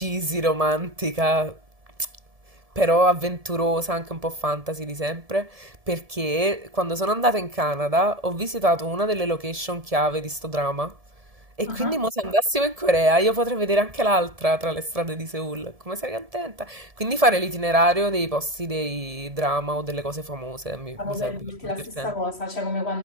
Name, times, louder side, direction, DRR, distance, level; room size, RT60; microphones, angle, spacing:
voice 1, 0.0-1.6 2.7-10.9 11.6-21.3 22.0-22.1, right 1 dB, 30° right, 3.1 m, -24 dB
voice 2, 11.7-12.0 21.0-23.0, left 2 dB, 60° left, 4.7 m, -30 dB
omnidirectional pair, 1.2 m